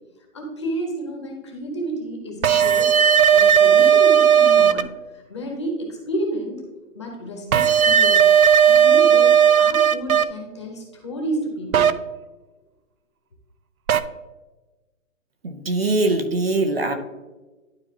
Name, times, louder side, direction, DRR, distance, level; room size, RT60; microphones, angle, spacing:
voice 1, 0.3-2.9 3.3-4.9 5.3-6.6 6.9-8.3 8.6-11.9, right 1 dB, 20° left, 0 dB, 1.0 m, -30 dB
sound 1, 2.4-4.8 7.5-10.2 11.7-11.9 13.9-14.0, right 8 dB, 80° right, 0.7 m, -15 dB
voice 2, 15.4-16.9, right 2 dB, 45° right, 7 dB, 0.7 m, -22 dB
11.5 x 4.2 x 2.9 m, 1.2 s
hypercardioid pair, 175°, 42 cm